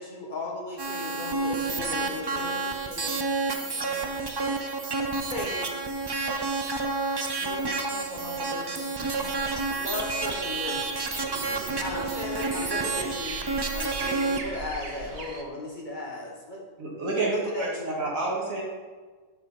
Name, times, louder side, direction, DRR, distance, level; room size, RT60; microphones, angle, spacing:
voice 1, 0.0-2.5 5.3-5.7 6.2-6.3 9.7-11.2 11.8-13.4 13.7-16.7 17.2-18.0, left 2 dB, 35° left, -1 dB, 1.5 m, -36 dB
sound 1, 0.8-14.4, right 3 dB, 35° right, 0.4 m, -30 dB
voice 2, 1.0-4.3 7.4-9.4, left 3 dB, 75° left, -2 dB, 2.1 m, -42 dB
sound 2, 9.1-15.4, right 3 dB, 50° right, 1.1 m, -41 dB
voice 3, 16.8-17.7 18.0-18.6, right 3 dB, 80° right, -3 dB, 2.4 m, -28 dB
7.5 x 6.1 x 5.4 m, 1.4 s
omnidirectional pair, 1.4 m